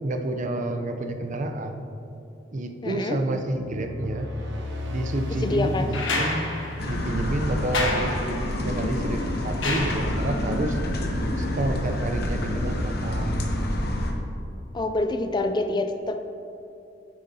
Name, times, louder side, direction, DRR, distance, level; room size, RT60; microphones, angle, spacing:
voice 1, 0.0-1.9 2.5-4.3 4.9-8.4 8.6-10.8 11.4-13.8, right 1 dB, 45° right, 6 dB, 0.5 m, -29 dB
voice 2, 2.8-3.2 5.4-5.9 14.7-16.2, left 2 dB, 25° left, 7 dB, 0.4 m, -26 dB
sound 1, 3.6-8.2, left 2 dB, 80° right, 1.1 m, -35 dB
sound 2, 5.9-10.5 12.1-12.2, left 2 dB, 85° left, 1.2 m, -31 dB
sound 3, 6.8-14.1, left 1 dB, 55° left, 0.9 m, -28 dB
9.1 x 9.1 x 2.8 m, 2.7 s
head